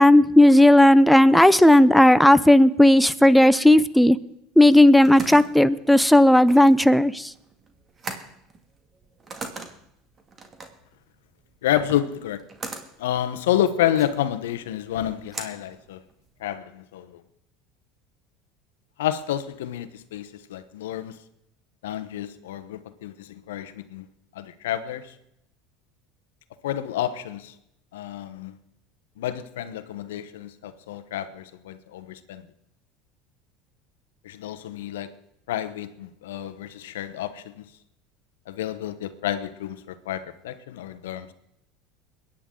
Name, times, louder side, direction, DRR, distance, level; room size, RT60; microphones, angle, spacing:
voice 1, 0.0-4.2 4.6-7.3, left 1 dB, ahead, 14 dB, 0.7 m, -14 dB
sound 1, 4.6-16.5, right 4 dB, 30° right, 2.3 m, -40 dB
voice 2, 11.6-12.4 13.0-16.0 16.4-17.2 19.0-21.2 21.8-25.2 26.6-27.5 27.9-28.6 29.2-32.4 34.2-35.1 35.5-37.6 38.5-41.3, left 11 dB, 85° left, 11 dB, 1.0 m, -29 dB
22.5 x 10.0 x 3.8 m, 0.79 s
supercardioid pair, 100°, 0 cm